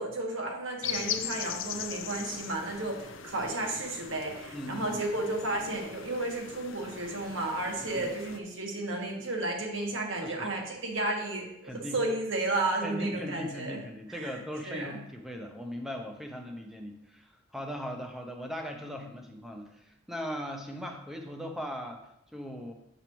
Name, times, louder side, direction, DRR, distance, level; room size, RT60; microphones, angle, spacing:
voice 1, 0.0-13.8 14.1-14.3 14.6-14.9, right 2 dB, 70° right, 1 dB, 1.4 m, -33 dB
sound 1, 0.8-8.4, left 9 dB, 70° left, 0.5 m, -40 dB
voice 2, 4.5-5.0 7.9-8.1 10.2-10.5 11.6-12.0 12.8-22.0 22.3-22.7, equal, ahead, 3 dB, 0.6 m, -39 dB
7.3 x 6.8 x 3.0 m, 0.80 s
head